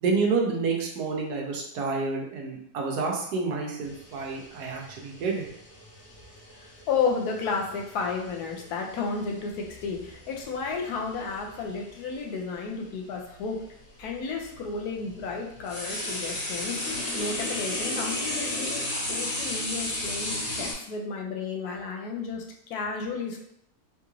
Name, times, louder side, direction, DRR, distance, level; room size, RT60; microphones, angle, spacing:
voice 1, 0.0-5.4, right 4 dB, 85° right, 0 dB, 1.3 m, -29 dB
sound 1, 3.8-12.0 13.1-13.2 14.0-20.7, left 1 dB, 60° left, 1.4 m, -35 dB
voice 2, 6.6-13.6 14.0-18.8 19.1-23.4, left 5 dB, 80° left, 0 dB, 1.1 m, -32 dB
3.9 x 2.4 x 3.0 m, 0.73 s
omnidirectional pair, 1.7 m